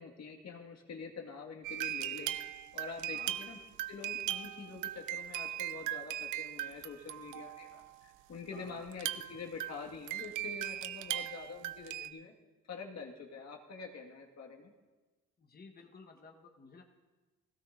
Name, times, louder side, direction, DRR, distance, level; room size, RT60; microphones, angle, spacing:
voice 1, 0.0-2.3 2.7-3.6 3.9-12.3 12.7-14.7, left 4 dB, 60° left, 2 dB, 1.8 m, -46 dB
sound 1, 1.6-7.9 8.9-12.1, right 13 dB, 90° right, 0.5 m, -39 dB
voice 2, 8.5-8.8 15.4-16.8, left 4 dB, 30° left, 2 dB, 1.3 m, -54 dB
16.5 x 16.0 x 2.6 m, 1.3 s
cardioid pair, 90°, 30 cm